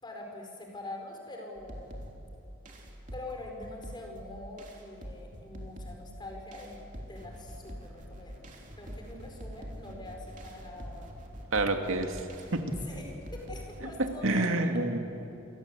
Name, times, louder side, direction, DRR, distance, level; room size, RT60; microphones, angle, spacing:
voice 1, 0.0-2.0 3.1-8.4 8.7-11.1 12.8-13.0 13.3-14.8, left 2 dB, 20° left, 2 dB, 4.9 m, -44 dB
sound 1, 1.6-13.9, equal, 40° right, 3.5 m, -45 dB
voice 2, 11.5-12.2 12.5-12.6 14.0-15.0, right 2 dB, 80° right, 5 dB, 2.4 m, -28 dB
29.0 x 23.5 x 8.3 m, 2.9 s
head